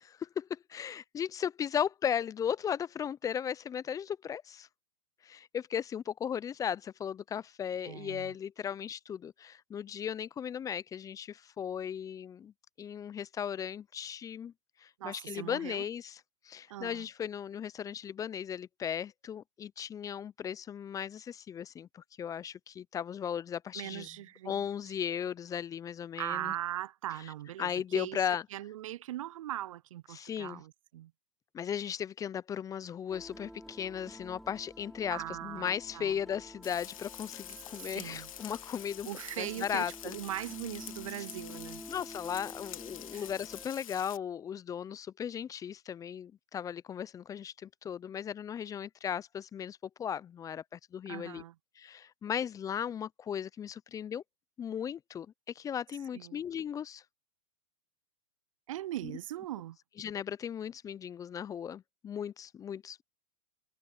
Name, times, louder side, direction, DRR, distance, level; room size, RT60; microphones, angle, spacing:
voice 1, 0.0-4.7 5.2-12.5 12.8-14.5 14.8-24.1 24.4-26.5 27.6-28.4 30.1-30.6 31.5-39.1 39.4-40.2 41.9-51.4 51.8-54.2 54.6-55.3 55.6-57.0 59.0-59.1 60.0-63.0, left 8 dB, 20° left, 0.6 m, -36 dB
voice 2, 7.8-8.3 15.0-15.8 16.7-17.1 23.7-24.9 26.2-28.2 28.5-31.1 35.1-36.2 37.9-38.3 39.0-41.8 43.1-43.3 51.1-51.5 56.1-56.4 58.7-59.8, right 13 dB, 65° right, 0.6 m, -40 dB
sound 1, 33.1-43.7, equal, ahead, 3.9 m, -50 dB
Frying (food), 36.6-44.2, left 11 dB, 70° left, 2.2 m, -47 dB
hypercardioid pair, 110°, 18 cm